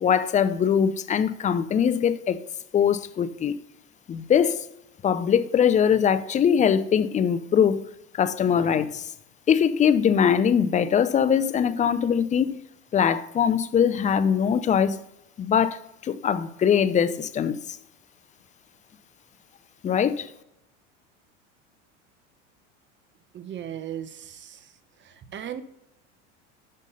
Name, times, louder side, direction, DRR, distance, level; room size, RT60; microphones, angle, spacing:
voice 1, 0.0-2.4 2.7-3.5 4.1-4.7 5.0-7.8 8.1-9.1 9.5-12.6 12.9-15.0 15.4-17.8 19.8-20.3, left 8 dB, 20° left, 0.4 m, -22 dB
voice 2, 23.3-24.7 25.0-25.6, right 10 dB, 30° right, 0.8 m, -37 dB
6.4 x 5.4 x 5.4 m
hypercardioid pair, 95°, 37 cm